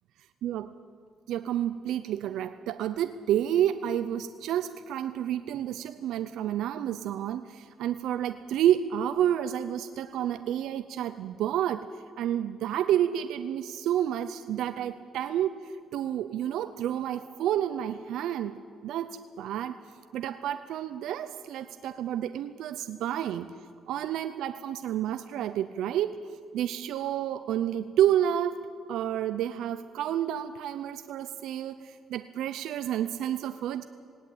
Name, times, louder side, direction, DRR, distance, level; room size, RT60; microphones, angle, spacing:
voice 1, 0.4-0.7 1.3-11.9 12.2-19.8 20.1-23.5 23.9-26.2 26.5-33.8, right 11 dB, 85° right, 11 dB, 0.6 m, -30 dB
18.5 x 18.0 x 8.7 m, 2.4 s
cardioid pair, 90°, 0 cm